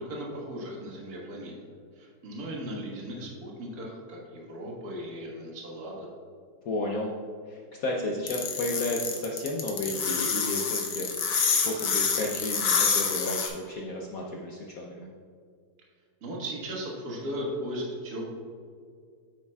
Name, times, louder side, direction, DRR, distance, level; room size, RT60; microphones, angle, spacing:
voice 1, 0.0-1.5 1.9-6.1 16.2-18.2, equal, 45° right, -3 dB, 1.8 m, -37 dB
voice 2, 6.6-7.1 7.5-15.1, left 2 dB, 80° left, -1 dB, 0.7 m, -33 dB
sound 1, 8.3-13.5, left 6 dB, 60° left, 1.4 m, -27 dB
9.0 x 8.6 x 2.3 m, 2.1 s
omnidirectional pair, 2.4 m